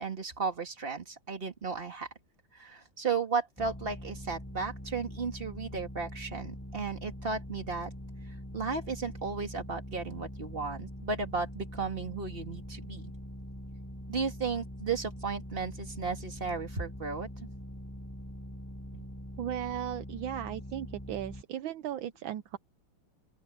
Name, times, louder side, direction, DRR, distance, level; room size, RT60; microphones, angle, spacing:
voice 1, 0.0-2.1 2.5-7.9 8.5-13.0 14.1-17.5, right 5 dB, 25° right, 2.5 m, -34 dB
sound 1, 3.6-21.4, equal, 5° left, 7.8 m, -43 dB
voice 2, 19.4-22.6, right 11 dB, 75° right, 1.4 m, -36 dB
open air
omnidirectional pair, 2.3 m